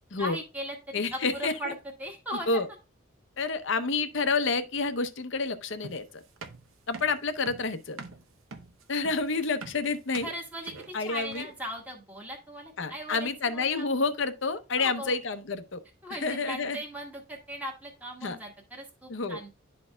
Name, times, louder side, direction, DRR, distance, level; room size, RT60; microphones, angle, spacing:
voice 1, 0.2-2.6 10.2-13.9 14.8-15.1 16.0-19.5, equal, 5° right, 1.2 m, -38 dB
voice 2, 0.9-1.7 2.5-2.6 3.4-6.2 6.9-8.0 8.9-10.3 10.9-11.5 12.8-15.8 16.2-16.8 18.2-18.4 19.1-19.4, left 4 dB, 60° left, 0.7 m, -29 dB
sound 1, 5.8-11.7, right 4 dB, 70° right, 0.8 m, -45 dB
11.5 x 4.3 x 2.2 m
head